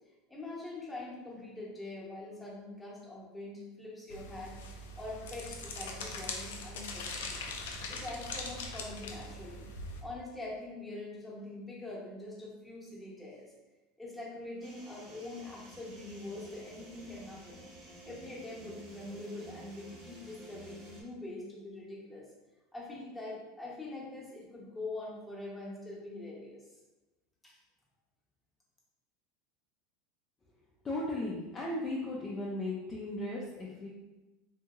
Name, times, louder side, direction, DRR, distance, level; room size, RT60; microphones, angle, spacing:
voice 1, 0.3-4.6 4.9-7.4 7.9-9.7 10.0-13.5 14.0-17.6 18.0-22.3 22.7-26.6 27.4-27.5, left 2 dB, 5° left, -6 dB, 1.0 m, -44 dB
sound 1, 4.1-10.0, left 2 dB, 85° left, 0.4 m, -41 dB
sound 2, 14.6-21.0, right 2 dB, 45° right, 1.1 m, -52 dB
voice 2, 30.8-33.9, left 2 dB, 20° left, -5 dB, 0.5 m, -36 dB
2.8 x 2.7 x 2.4 m, 1.1 s
supercardioid pair, 110°, 0 cm